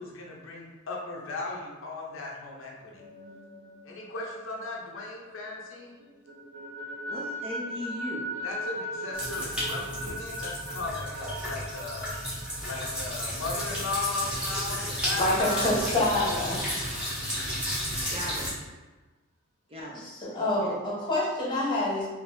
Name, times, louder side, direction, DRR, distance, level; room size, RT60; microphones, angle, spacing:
voice 1, 0.0-3.0 3.8-6.0 8.4-12.1 12.6-15.8 16.2-16.6, left 3 dB, 70° left, -2 dB, 0.6 m, -37 dB
sound 1, 2.8-5.6 6.0-15.4, equal, 80° right, 0.7 m, -40 dB
voice 2, 7.1-8.3 18.1-18.5 19.7-20.1 20.4-20.8, equal, 30° right, -3 dB, 0.6 m, -38 dB
sound 2, 9.1-18.5, equal, 5° right, 1.1 m, -33 dB
voice 3, 15.2-16.7 19.9-22.1, left 1 dB, 25° left, -6 dB, 1.0 m, -27 dB
3.8 x 2.6 x 2.6 m, 1.2 s
head